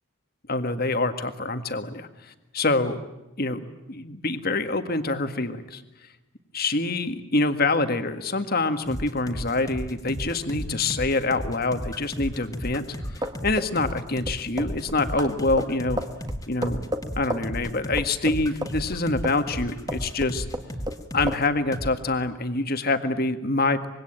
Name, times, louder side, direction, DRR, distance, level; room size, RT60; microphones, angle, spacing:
voice 1, 0.5-2.1 2.5-3.0 3.4-3.6 3.9-5.8 6.5-13.0 13.4-16.0 16.5-16.8 17.2-20.5 21.1-23.9, left 2 dB, 45° left, 9 dB, 1.8 m, -25 dB
sound 1, 8.9-21.4 21.7-21.9, equal, 15° left, 2.1 m, -34 dB
sound 2, 13.0-19.6 19.9-21.0 21.3-21.4, right 1 dB, 20° right, 1.6 m, -32 dB
25.5 x 23.0 x 8.9 m, 1.0 s
head